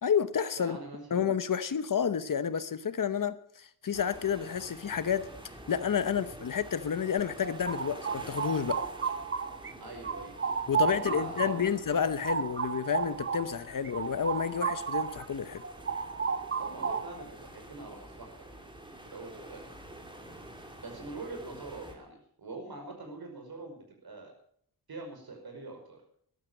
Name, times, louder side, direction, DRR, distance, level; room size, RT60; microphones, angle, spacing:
voice 1, 0.0-0.8 1.1-5.3 5.7-8.8 10.7-15.6, left 7 dB, 55° left, 0.9 m, -30 dB
voice 2, 0.6-1.2 9.8-10.4 10.9-11.7 16.6-19.6 20.8-23.8 24.0-24.3 24.9-26.0, right 2 dB, 70° right, 5.4 m, -44 dB
sound 1, 3.9-21.9, right 1 dB, 10° right, 2.4 m, -49 dB
sound 2, 7.2-9.7 10.0-15.3 15.6-17.3, right 6 dB, 35° right, 0.7 m, -33 dB
14.0 x 12.5 x 6.3 m
wide cardioid pair, 175°, 38 cm